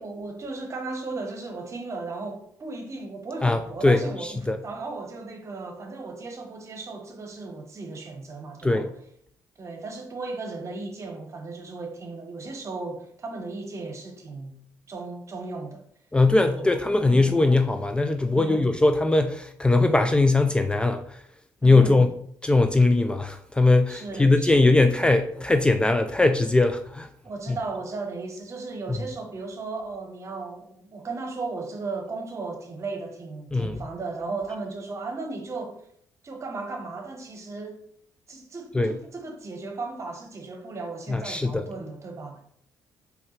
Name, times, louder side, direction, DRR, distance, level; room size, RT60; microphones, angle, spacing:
voice 1, 0.0-8.9 9.6-14.5 14.9-15.8 16.5-16.7 17.1-17.5 18.3-18.8 21.6-22.1 23.9-24.7 27.2-35.8 36.2-37.8 38.3-42.4, right 3 dB, 40° right, 1.0 m, -36 dB
voice 2, 3.4-4.6 8.6-8.9 16.1-21.2 21.6-22.1 22.4-27.1 33.5-33.8 38.7-38.9 41.1-41.6, left 2 dB, 15° left, 0.3 m, -20 dB
4.4 x 3.3 x 3.2 m
supercardioid pair, 65°, 8 cm